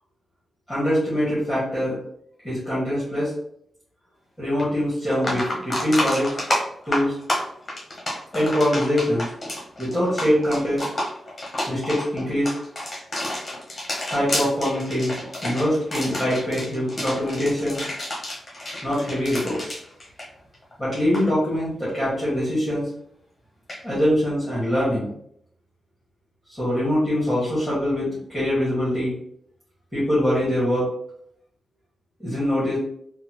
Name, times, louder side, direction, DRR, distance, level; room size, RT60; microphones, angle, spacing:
voice 1, 0.7-2.0 2.4-3.3 4.4-6.3 6.8-7.2 8.3-9.3 9.8-10.8 11.7-12.5 14.1-17.8 18.8-19.7 20.8-22.9 23.8-25.1 26.6-29.1 29.9-30.9 32.2-32.8, equal, ahead, -9 dB, 1.3 m, -23 dB
sound 1, 4.6-4.7 5.1-20.7 21.0-21.2 23.7-23.8, left 1 dB, 25° left, 0.8 m, -30 dB
3.9 x 2.1 x 3.0 m, 0.69 s
wide cardioid pair, 160°, 0 cm